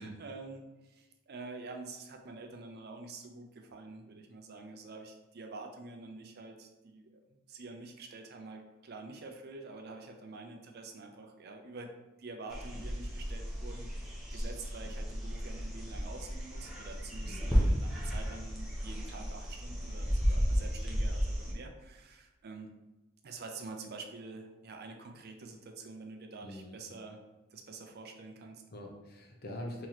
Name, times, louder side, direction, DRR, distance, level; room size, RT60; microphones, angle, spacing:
voice 1, 0.0-7.2 7.5-11.9 12.2-22.7 23.2-27.2 27.5-28.6, right 3 dB, 50° right, 4 dB, 0.5 m, -47 dB
sound 1, 12.5-21.5, equal, ahead, 0.7 m, -33 dB
voice 2, 17.2-17.6 26.4-26.8 28.7-29.9, left 1 dB, 50° left, 1 dB, 0.7 m, -44 dB
3.0 x 2.9 x 3.9 m, 1.1 s
head